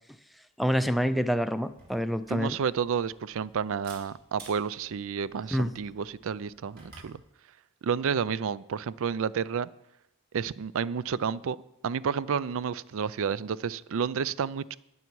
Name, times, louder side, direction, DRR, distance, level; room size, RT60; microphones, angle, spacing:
voice 1, 0.6-2.6 5.5-5.7, equal, ahead, 0.4 m, -27 dB
Camera, 1.6-7.2, right 3 dB, 45° right, 4.6 m, -54 dB
voice 2, 2.3-7.2 7.8-9.7 10.3-11.6 11.8-14.8, right 6 dB, 65° right, 0.4 m, -30 dB
20.0 x 7.0 x 4.7 m
head